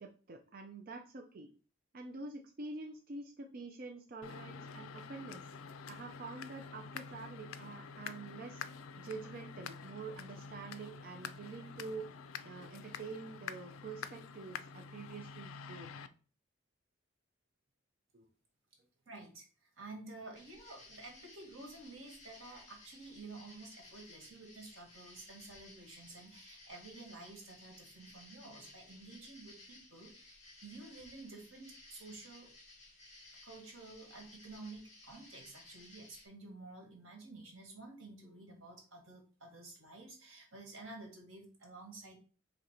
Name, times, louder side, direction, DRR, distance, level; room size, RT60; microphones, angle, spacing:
voice 1, 0.0-1.5 1.9-5.4 5.9-8.6 9.0-12.1 12.4-15.9 18.1-18.3, right 3 dB, 45° right, 3 dB, 0.4 m, -47 dB
sound 1, 4.2-16.1, left 6 dB, 85° left, 0.4 m, -47 dB
voice 2, 19.1-32.5 33.4-42.2, right 2 dB, 85° right, 1 dB, 1.7 m, -51 dB
sound 2, 20.3-36.3, left 2 dB, 30° left, 1.9 m, -57 dB
3.9 x 3.2 x 4.2 m, 0.38 s
head